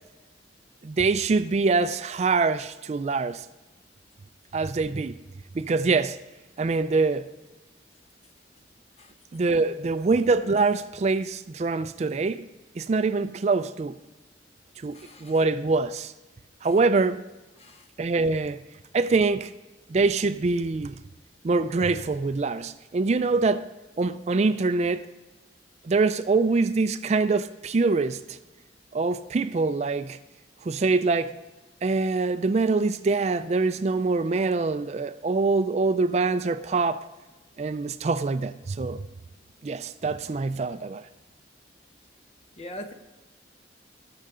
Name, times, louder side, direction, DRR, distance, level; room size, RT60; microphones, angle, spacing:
voice 1, 0.8-3.5 4.5-5.2 5.5-6.2 6.6-7.3 9.3-12.5 12.8-14.0 14.8-15.0 15.2-16.1 16.6-17.2 18.0-18.6 18.9-19.5 19.9-21.0 21.4-23.7 24.0-25.1 25.8-28.4 28.9-30.2 30.6-31.4 31.8-37.1 37.6-39.0 39.6-41.0, right 3 dB, 35° right, 0.3 m, -24 dB
voice 2, 14.9-15.3 17.6-17.8 42.6-42.9, left 1 dB, 35° left, 1.2 m, -41 dB
19.5 x 6.6 x 3.7 m
head